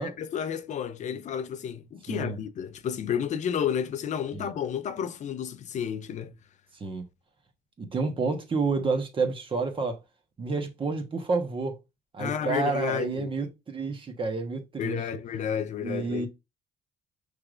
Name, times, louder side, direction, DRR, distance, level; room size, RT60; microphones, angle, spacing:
voice 1, 0.0-6.3 12.2-13.3 14.8-16.3, left 8 dB, 45° left, 0.5 m, -31 dB
voice 2, 2.1-2.4 4.3-4.5 6.8-7.1 7.8-10.0 10.4-11.8 12.1-15.0 15.8-16.3, right 4 dB, 30° right, 1.2 m, -29 dB
5.7 x 3.3 x 2.5 m
cardioid pair, 110°, 17 cm